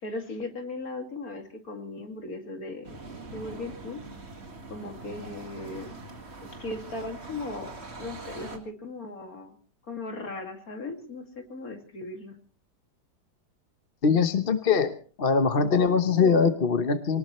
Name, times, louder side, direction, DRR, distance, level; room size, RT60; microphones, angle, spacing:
voice 1, 0.0-3.0 3.3-4.0 4.7-5.9 6.5-9.6 9.9-12.3, left 2 dB, 55° left, 4 dB, 2.8 m, -37 dB
sound 1, 2.8-8.6, right 3 dB, 40° right, 2.2 m, -43 dB
voice 2, 14.0-14.9 15.2-17.2, left 5 dB, 40° left, 8 dB, 1.0 m, -22 dB
24.5 x 19.0 x 3.1 m, 0.40 s
omnidirectional pair, 1.8 m